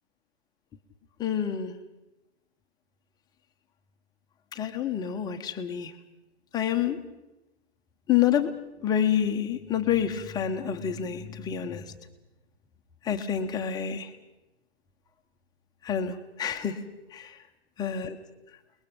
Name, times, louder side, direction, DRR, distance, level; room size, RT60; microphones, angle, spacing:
voice 1, 1.2-1.7 4.5-5.9 6.5-7.0 8.1-8.5 8.8-11.8 13.0-14.1 15.8-16.8 17.1-17.4 17.8-18.2, left 9 dB, 10° left, 6 dB, 1.0 m, -28 dB
29.0 x 21.0 x 5.3 m, 1.0 s
figure-of-eight pair, 130°, 33 cm